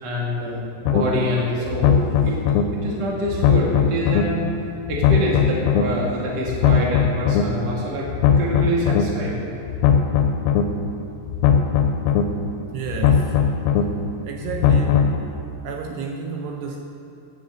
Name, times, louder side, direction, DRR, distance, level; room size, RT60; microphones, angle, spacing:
voice 1, 0.0-2.4 2.7-4.4 4.9-9.5, equal, 45° right, -4 dB, 1.3 m, -26 dB
sound 1, 0.9-1.0 1.7-2.6 3.3-4.2 4.9-5.8 6.5-7.4 8.1-9.0 9.7-10.6 11.3-12.2 12.9-13.8 14.5-15.2, left 8 dB, 85° left, 2.7 m, -18 dB
voice 2, 12.7-13.4 14.2-15.1 15.6-16.8, right 6 dB, 80° right, 2 dB, 2.5 m, -31 dB
9.9 x 8.5 x 7.5 m, 2.7 s
omnidirectional pair, 5.2 m